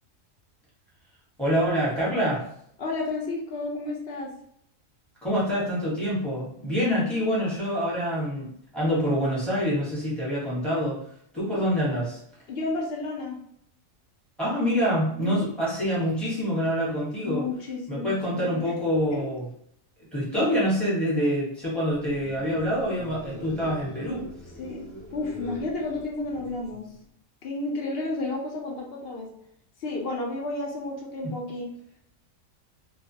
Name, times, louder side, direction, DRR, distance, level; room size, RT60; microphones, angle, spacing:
voice 1, 1.4-2.5 5.2-11.0 11.3-12.2 14.4-17.4 17.9-19.5 20.1-24.3 31.2-31.4, equal, ahead, -8 dB, 0.9 m, -26 dB
voice 2, 2.8-4.3 12.5-13.4 15.2-15.5 17.2-18.7 19.1-19.3 24.6-26.8 27.4-29.3 29.8-31.7, left 2 dB, 60° left, 0 dB, 0.7 m, -32 dB
sound 1, 22.0-27.0, equal, 35° right, 0.6 m, -43 dB
2.3 x 2.2 x 2.7 m, 0.68 s
omnidirectional pair, 1.4 m